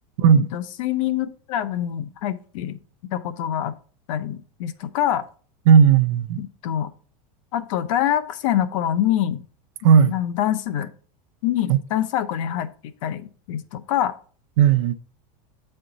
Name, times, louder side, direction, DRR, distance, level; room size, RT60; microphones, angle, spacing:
voice 1, 0.3-2.8 3.1-3.7 4.1-5.2 6.4-6.9 7.5-9.4 10.1-10.9 11.4-12.7 13.0-14.1, left 11 dB, 65° left, 0.6 m, -25 dB
voice 2, 5.7-6.4 9.8-10.1 11.7-11.8 14.6-14.9, right 7 dB, 70° right, 0.6 m, -15 dB
8.6 x 4.4 x 3.9 m
supercardioid pair, 155°, 18 cm